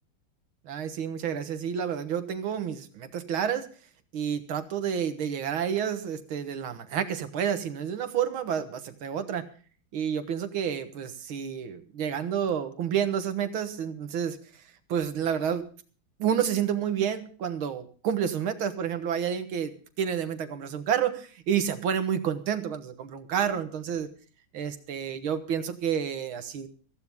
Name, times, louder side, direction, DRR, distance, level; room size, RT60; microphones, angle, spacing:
voice 1, 0.7-3.7 4.1-9.5 9.9-14.6 14.9-15.7 16.2-24.1 24.5-26.7, right 8 dB, 85° right, 9 dB, 2.1 m, -29 dB
15.5 x 15.0 x 3.6 m, 0.41 s
omnidirectional pair, 2.2 m